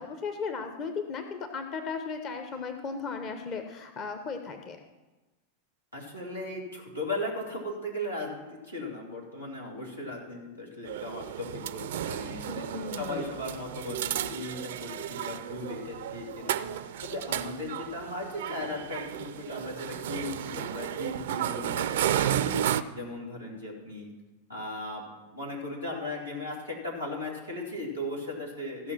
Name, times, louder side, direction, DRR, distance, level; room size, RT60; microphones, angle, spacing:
voice 1, 0.0-4.8 12.5-13.3, left 5 dB, 35° left, 6 dB, 1.0 m, -36 dB
voice 2, 5.9-12.6 13.0-22.6 22.9-24.1 24.5-28.9, left 1 dB, 90° left, -4 dB, 2.9 m, -37 dB
sound 1, 10.8-22.8, right 11 dB, 55° right, 0.4 m, -33 dB
15.0 x 5.6 x 6.0 m, 1.2 s
figure-of-eight pair, 90°, 0 cm